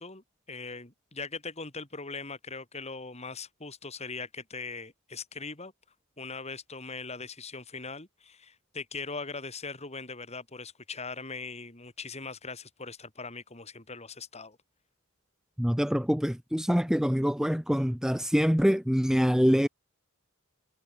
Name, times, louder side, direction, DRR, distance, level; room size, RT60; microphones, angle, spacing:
voice 1, 0.0-5.7 6.2-14.6, left 4 dB, 30° left, 4.0 m, -40 dB
voice 2, 15.6-19.7, equal, ahead, 0.9 m, -25 dB
head